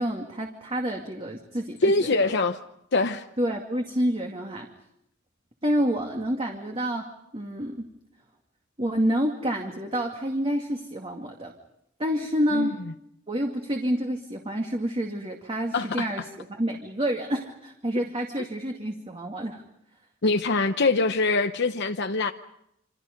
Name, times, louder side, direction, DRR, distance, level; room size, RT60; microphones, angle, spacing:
voice 1, 0.0-2.2 3.4-4.7 5.6-7.9 8.8-11.5 12.0-12.8 13.3-19.6, equal, 30° right, 2.3 m, -28 dB
voice 2, 1.8-2.6 2.9-3.2 12.5-12.7 15.7-16.0 20.2-22.3, left 3 dB, 60° left, 1.0 m, -23 dB
28.0 x 27.0 x 5.3 m
head